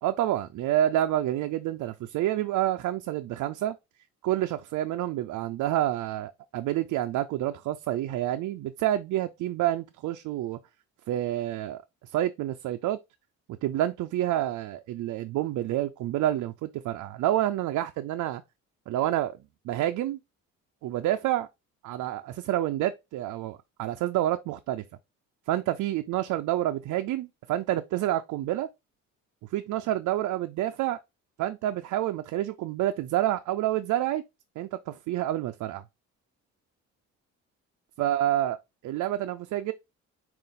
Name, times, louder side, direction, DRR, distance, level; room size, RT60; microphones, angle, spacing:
voice 1, 0.0-3.8 4.2-10.6 11.1-11.8 12.1-13.0 13.6-18.4 18.9-19.3 19.6-20.2 20.8-21.5 21.8-24.8 25.5-28.7 29.5-31.0 31.4-34.2 34.6-35.8 38.0-38.6 38.8-39.7, right 13 dB, 75° right, 0.5 m, -28 dB
5.2 x 2.5 x 3.7 m
cardioid pair, 90°, 30 cm